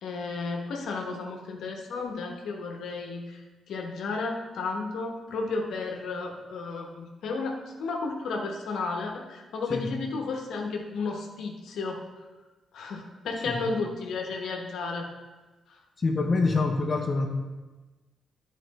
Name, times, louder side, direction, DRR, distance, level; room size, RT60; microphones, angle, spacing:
voice 1, 0.0-3.4 3.7-12.0 12.7-15.1 15.7-15.8, left 3 dB, 80° left, 2 dB, 1.0 m, -33 dB
voice 2, 16.0-17.3, left 3 dB, 40° left, 2 dB, 0.8 m, -25 dB
8.6 x 4.5 x 4.1 m, 1.2 s
cardioid pair, 75°, 0 cm